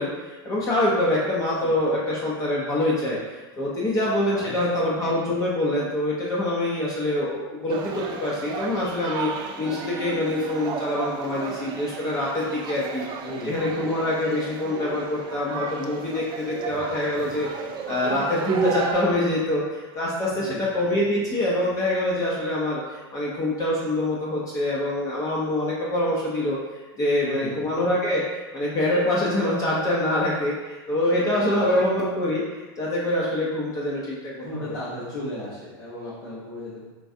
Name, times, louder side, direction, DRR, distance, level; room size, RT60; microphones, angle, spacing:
voice 1, 0.0-13.0 13.4-17.5 17.9-26.6 27.0-32.4 32.8-34.5, left 1 dB, 25° left, -5 dB, 0.6 m, -25 dB
sound 1, 7.7-18.9, right 5 dB, 35° right, 0.4 m, -33 dB
Musical instrument, 9.6-16.0, right 6 dB, 80° right, 0.7 m, -44 dB
voice 2, 13.2-13.7 20.4-20.6 27.2-27.6 31.4-31.9 34.4-36.8, left 1 dB, 85° left, -11 dB, 1.2 m, -35 dB
4.5 x 2.3 x 2.6 m, 1.2 s
supercardioid pair, 120°, 13 cm